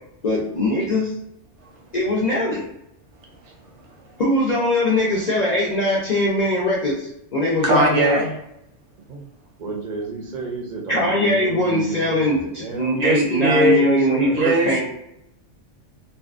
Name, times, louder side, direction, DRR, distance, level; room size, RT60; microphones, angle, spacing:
voice 1, 0.2-1.1 1.9-2.6 4.2-8.2 10.9-14.8, left 1 dB, 55° left, -4 dB, 0.4 m, -21 dB
voice 2, 7.6-8.3 12.9-13.8 14.3-14.8, right 1 dB, 80° right, 0 dB, 1.0 m, -19 dB
voice 3, 9.6-13.1 13.4-14.4, right 4 dB, 55° right, -1 dB, 0.6 m, -31 dB
2.6 x 2.2 x 2.4 m, 0.81 s
omnidirectional pair, 1.2 m